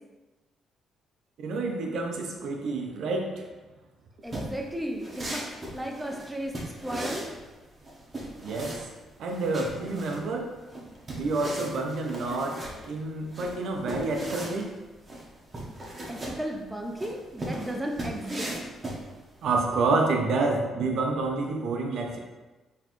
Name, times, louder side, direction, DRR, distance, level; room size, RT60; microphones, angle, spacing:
voice 1, 1.4-3.5 8.4-8.9 9.2-10.5 11.1-14.7 19.4-22.2, right 3 dB, 70° right, 2 dB, 0.6 m, -28 dB
voice 2, 4.2-7.3 16.1-18.5, equal, 10° right, 1 dB, 0.7 m, -34 dB
sound 1, 4.2-19.5, right 1 dB, 30° right, 1.0 m, -38 dB
4.1 x 3.2 x 3.0 m, 1.2 s
cardioid pair, 90°, 0 cm